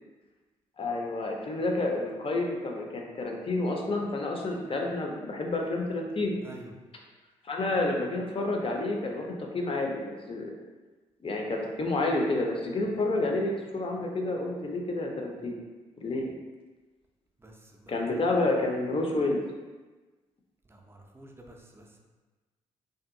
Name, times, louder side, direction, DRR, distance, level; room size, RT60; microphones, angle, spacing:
voice 1, 0.8-6.4 7.4-10.5 11.2-15.6 16.0-16.3 17.9-19.4, left 2 dB, 35° left, 1 dB, 0.6 m, -29 dB
voice 2, 6.4-6.7 17.4-18.2 20.6-22.0, right 1 dB, 15° right, 1 dB, 0.5 m, -50 dB
2.6 x 2.5 x 2.5 m, 1.2 s
hypercardioid pair, 40°, 16 cm